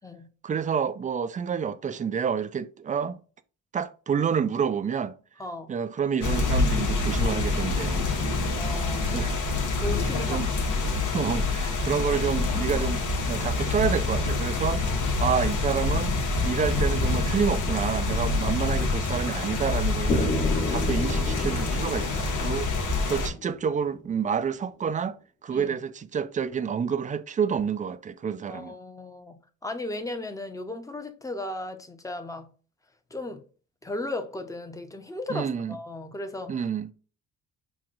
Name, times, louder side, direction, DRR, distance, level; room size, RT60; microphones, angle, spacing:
voice 1, 0.4-3.2 3.7-5.2 5.7-8.1 9.1-9.4 10.3-10.5 11.1-16.2 16.4-20.4 20.7-25.2 25.4-28.7 35.3-35.8 36.5-36.9, right 7 dB, 25° right, 0.3 m, -28 dB
voice 2, 5.4-5.7 8.5-9.3 9.7-10.4 18.5-18.6 25.5-25.8 28.5-32.5 33.1-33.4 33.8-36.7, left 2 dB, 10° left, 0.7 m, -36 dB
sound 1, 6.2-23.3, left 3 dB, 90° left, 1.0 m, -26 dB
sound 2, 20.1-24.0, left 2 dB, 40° left, 1.1 m, -32 dB
5.9 x 2.3 x 2.5 m
cardioid pair, 90°, 30 cm